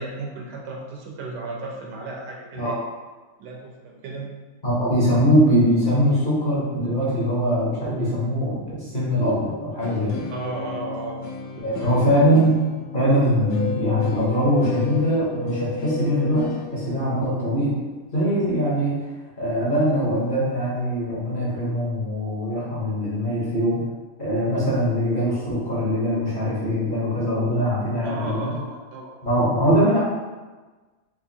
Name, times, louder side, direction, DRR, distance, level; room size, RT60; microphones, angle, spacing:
voice 1, 0.0-2.8 3.4-4.3 10.3-11.2 11.6-12.2 28.0-29.1, right 2 dB, 85° right, -1 dB, 1.3 m, -34 dB
voice 2, 4.6-10.3 11.6-12.6 12.9-17.7 18.1-19.0 19.4-23.8 24.2-28.5 29.2-30.0, equal, 35° left, -9 dB, 0.9 m, -22 dB
sound 1, 9.8-18.8, left 6 dB, 70° left, 0.9 m, -36 dB
Wind, 13.2-17.5 17.8-17.9, left 3 dB, 90° left, 0.4 m, -32 dB
3.8 x 2.7 x 2.7 m, 1.3 s
omnidirectional pair, 1.8 m